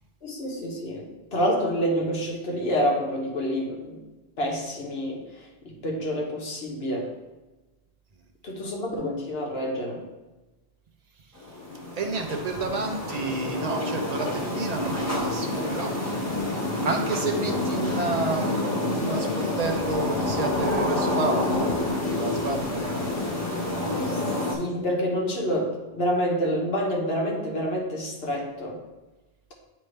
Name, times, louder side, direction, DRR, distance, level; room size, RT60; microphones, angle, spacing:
voice 1, 0.2-4.0 4.4-5.2 5.6-7.1 8.4-10.0 24.0-24.2 24.5-28.8, equal, 70° left, -1 dB, 1.4 m, -28 dB
sound 1, 11.3-24.5, left 2 dB, 15° left, 1.3 m, -28 dB
voice 2, 11.9-15.9 16.8-18.6 18.9-21.7 22.1-22.9, right 3 dB, 40° right, 3 dB, 0.8 m, -30 dB
9.7 x 3.4 x 3.3 m, 1.1 s
omnidirectional pair, 1.1 m